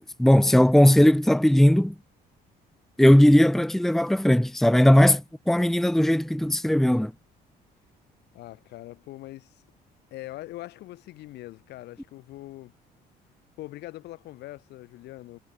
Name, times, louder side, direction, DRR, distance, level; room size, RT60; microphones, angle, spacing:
voice 1, 0.0-1.9 3.0-7.1, left 1 dB, ahead, 1.0 m, -18 dB
voice 2, 8.3-9.6 10.1-12.7 13.6-15.4, left 17 dB, 80° left, 6.4 m, -42 dB
cardioid pair, 110°, 17 cm